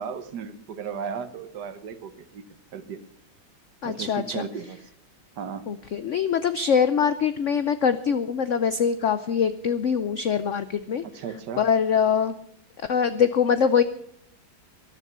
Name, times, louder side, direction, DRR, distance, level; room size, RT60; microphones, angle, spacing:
voice 1, 0.0-2.4 2.7-3.0 3.8-4.8 5.4-5.6 11.0-11.6, right 6 dB, 60° right, 11 dB, 1.5 m, -35 dB
voice 2, 3.8-4.5 5.7-11.0 11.6-12.3 12.9-13.8, left 7 dB, 80° left, 12 dB, 0.6 m, -23 dB
14.0 x 11.5 x 6.8 m, 0.68 s
omnidirectional pair, 2.1 m